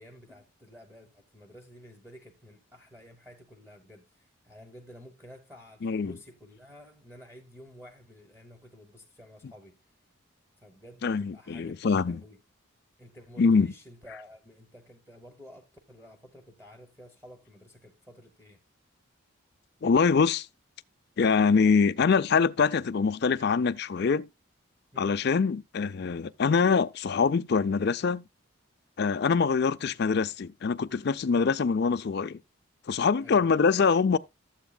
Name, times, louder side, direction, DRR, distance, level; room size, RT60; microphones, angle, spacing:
voice 1, 0.0-9.8 10.6-12.4 13.0-18.6 24.9-25.2 31.3-31.5 33.2-33.4, equal, 10° right, 1.0 m, -51 dB
voice 2, 5.8-6.2 11.0-12.2 13.4-13.7 19.8-20.5 21.2-24.3 25.0-28.2 29.0-32.4 32.9-34.2, left 5 dB, 50° left, 0.4 m, -24 dB
13.0 x 8.0 x 2.2 m
head